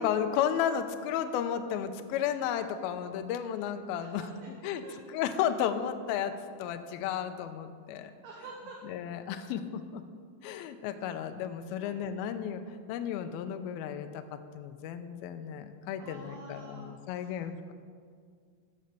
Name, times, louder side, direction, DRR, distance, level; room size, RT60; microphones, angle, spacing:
voice 1, 0.0-4.3 4.6-6.3 6.6-8.1 8.8-10.0 10.4-17.7, left 9 dB, 80° left, 8 dB, 2.2 m, -33 dB
voice 2, 4.0-4.5 4.8-4.9 8.2-8.8 11.8-12.0 16.0-17.3, right 3 dB, 70° right, -3 dB, 3.0 m, -48 dB
15.5 x 5.6 x 6.8 m, 2.1 s
omnidirectional pair, 4.9 m